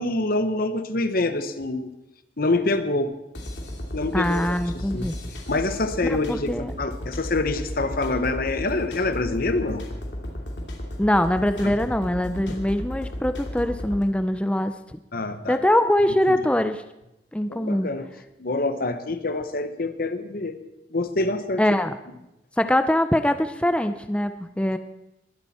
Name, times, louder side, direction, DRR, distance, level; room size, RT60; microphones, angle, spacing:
voice 1, 0.0-1.9 2.4-3.2 3.9-4.5 4.7-5.1 5.5-9.8 11.6-11.8 12.5-12.6 15.1-15.6 17.5-18.1 18.4-20.6 20.9-21.6, left 2 dB, 60° left, 10 dB, 1.1 m, -26 dB
sound 1, 3.3-14.0, left 1 dB, 80° left, 2.8 m, -34 dB
voice 2, 4.1-5.2 6.1-6.7 11.0-15.0 15.5-16.8 17.3-17.9 21.6-22.0 22.6-24.8, left 1 dB, 5° left, 9 dB, 0.5 m, -23 dB
21.5 x 11.5 x 4.3 m, 0.90 s
head